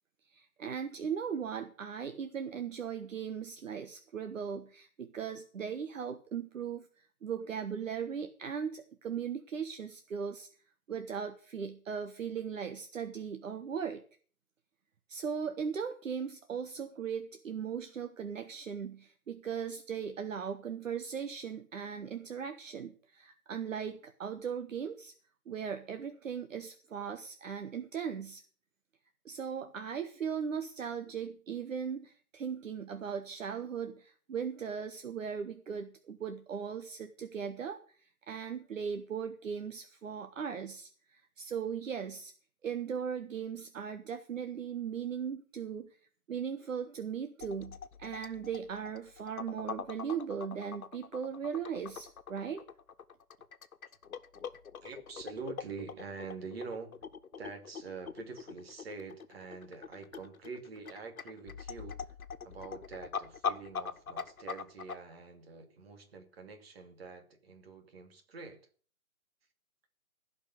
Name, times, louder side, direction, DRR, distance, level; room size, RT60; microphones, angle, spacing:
voice 1, 0.3-10.5 10.9-14.0 15.1-25.1 25.5-28.4 29.2-42.3 42.6-46.0 46.3-52.6, right 7 dB, 60° right, 8 dB, 1.4 m, -38 dB
sound 1, 47.4-64.9, left 6 dB, 70° left, 1.4 m, -42 dB
voice 2, 54.8-57.0 57.4-62.1 62.4-68.7, right 4 dB, 45° right, 6 dB, 2.6 m, -46 dB
15.5 x 5.6 x 8.1 m, 0.43 s
hypercardioid pair, 155°, 43 cm